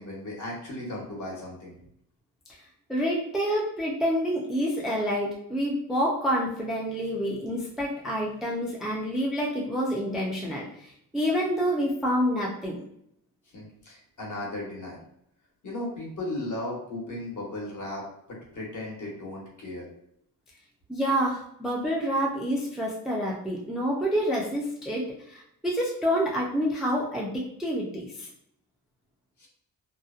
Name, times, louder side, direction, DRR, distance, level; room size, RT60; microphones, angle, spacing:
voice 1, 0.0-1.8 13.5-15.0 15.6-19.9 29.4-29.5, left 1 dB, 50° left, -2 dB, 1.0 m, -36 dB
voice 2, 2.9-12.8 20.9-28.3, equal, ahead, -3 dB, 0.4 m, -28 dB
2.7 x 2.1 x 2.4 m, 0.72 s
wide cardioid pair, 130°, 38 cm